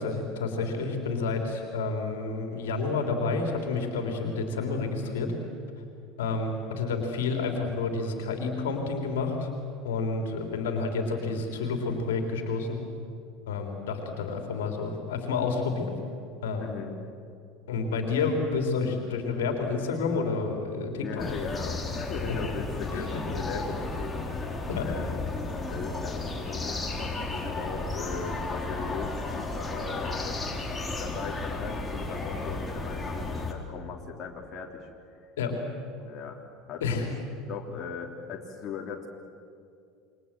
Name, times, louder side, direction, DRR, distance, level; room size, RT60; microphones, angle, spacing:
voice 1, 0.0-5.3 6.2-9.5 9.8-12.8 13.5-16.0 16.4-16.7 17.7-21.1 22.9-23.6 24.7-24.9 35.4-35.6 36.8-37.1, left 4 dB, 70° left, 3 dB, 3.5 m, -29 dB
voice 2, 16.6-17.0 21.0-24.2 24.8-25.2 25.7-30.5 31.0-34.9 35.2-35.3 36.0-36.4 36.7-37.1 37.5-39.1, left 6 dB, 40° left, 0 dB, 3.3 m, -38 dB
sound 1, 21.2-33.5, left 2 dB, 15° left, 3.9 m, -33 dB
28.0 x 23.5 x 7.7 m, 2.4 s
figure-of-eight pair, 75°, 0 cm